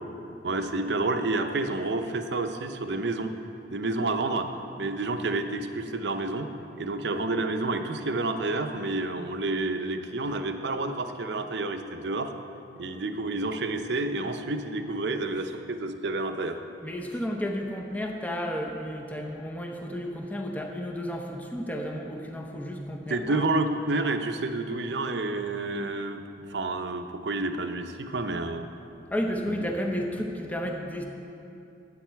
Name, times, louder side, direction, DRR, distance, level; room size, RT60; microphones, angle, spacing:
voice 1, 0.4-3.3 3.7-4.5 4.8-12.3 12.8-16.6 23.1-28.7, right 2 dB, 65° right, 7 dB, 0.6 m, -29 dB
voice 2, 16.8-23.5 29.1-31.1, equal, 10° left, 2 dB, 0.7 m, -32 dB
12.0 x 8.6 x 4.6 m, 2.8 s
head